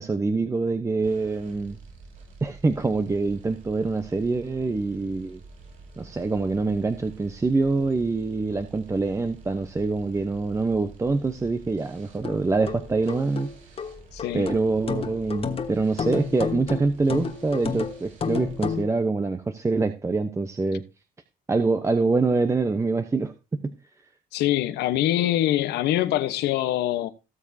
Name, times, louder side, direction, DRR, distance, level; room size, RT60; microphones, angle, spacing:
voice 1, 0.0-1.8 2.4-5.4 6.0-13.5 14.3-20.8 21.5-23.7, right 3 dB, 15° right, 0.8 m, -25 dB
sound 1, 1.0-18.8, right 3 dB, 50° right, 6.7 m, -48 dB
sound 2, 12.2-18.9, left 6 dB, 35° left, 1.3 m, -31 dB
voice 2, 14.1-14.5 24.3-27.1, left 13 dB, 80° left, 1.0 m, -24 dB
18.0 x 7.2 x 2.7 m
cardioid pair, 110°, 17 cm